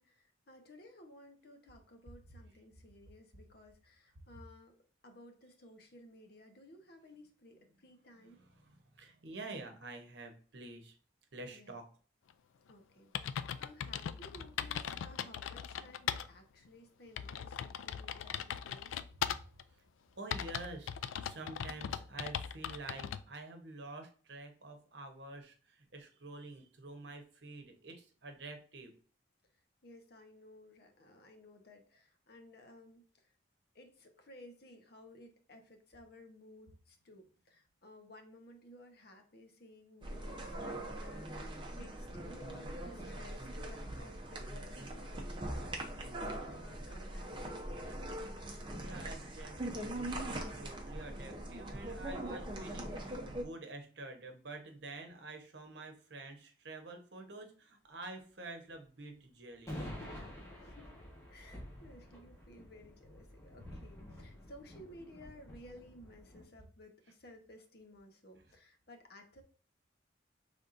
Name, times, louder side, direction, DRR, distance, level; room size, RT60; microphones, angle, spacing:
voice 1, 0.0-4.8 5.0-8.4 11.5-11.8 12.7-19.0 29.8-33.3 33.7-48.0 60.6-60.9 61.3-69.4, left 1 dB, 50° left, 4 dB, 0.9 m, -57 dB
voice 2, 8.2-10.9 11.3-11.8 20.2-28.9 48.7-60.0, right 2 dB, 60° right, 5 dB, 0.9 m, -48 dB
sound 1, 12.7-12.8 13.1-16.3 16.7-16.8 17.2-19.6 20.3-23.2, left 8 dB, 85° left, 0.3 m, -39 dB
sound 2, 40.0-53.4, right 1 dB, 25° right, 0.6 m, -42 dB
sound 3, 59.7-66.4, left 1 dB, 15° left, 1.3 m, -49 dB
5.3 x 3.4 x 2.5 m, 0.41 s
head